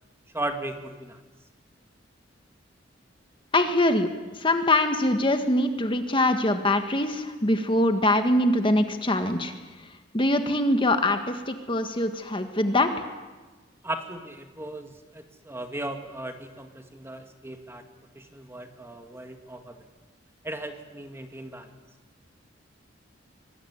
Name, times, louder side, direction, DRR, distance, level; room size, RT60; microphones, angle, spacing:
voice 1, 0.3-1.2 13.8-17.8 18.1-19.8 20.4-21.7, right 1 dB, 15° right, 5 dB, 2.1 m, -36 dB
voice 2, 3.5-9.5 10.1-12.9, left 1 dB, 25° left, 7 dB, 1.7 m, -23 dB
25.0 x 20.5 x 9.8 m, 1.3 s
head